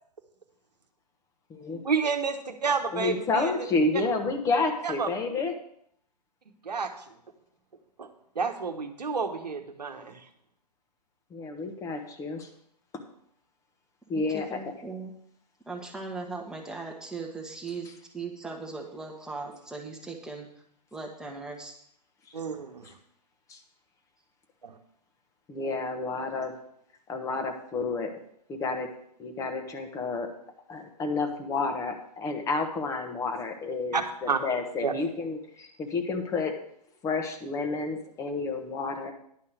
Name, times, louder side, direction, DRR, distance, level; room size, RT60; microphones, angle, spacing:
voice 1, 1.8-3.5 4.8-5.1 6.6-6.9 8.0-8.1 8.3-10.2 22.3-22.8 24.6-24.7 33.9-34.4 34.8-34.9, right 5 dB, 75° right, 4 dB, 1.1 m, -30 dB
voice 2, 2.9-5.5 11.3-12.5 12.9-13.0 14.1-14.6 22.8-22.9 23.5-23.6 25.5-26.5 27.1-28.1 28.5-28.9 29.2-30.3 30.7-34.0 34.4-36.5 37.0-39.1, left 3 dB, 15° left, 5 dB, 1.2 m, -30 dB
voice 3, 14.1-15.1 15.7-17.9 18.1-20.5 20.9-21.7, right 3 dB, 5° right, 0 dB, 1.4 m, -38 dB
11.0 x 5.6 x 6.5 m, 0.69 s
figure-of-eight pair, 120°, 21 cm